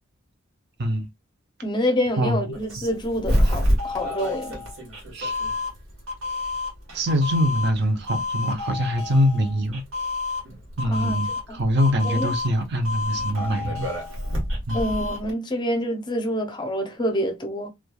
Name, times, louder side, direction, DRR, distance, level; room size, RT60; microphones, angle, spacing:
voice 1, 1.6-4.6 10.8-11.2 11.5-11.6 12.0-12.3 14.7-17.7, equal, 20° left, 0.5 m, -27 dB
Doorbell, 2.5-15.3, left 1 dB, 85° right, 1.2 m, -28 dB
voice 2, 6.9-9.8 10.8-13.9 14.7-14.8, equal, 55° right, 0.5 m, -23 dB
3.0 x 2.2 x 2.2 m
head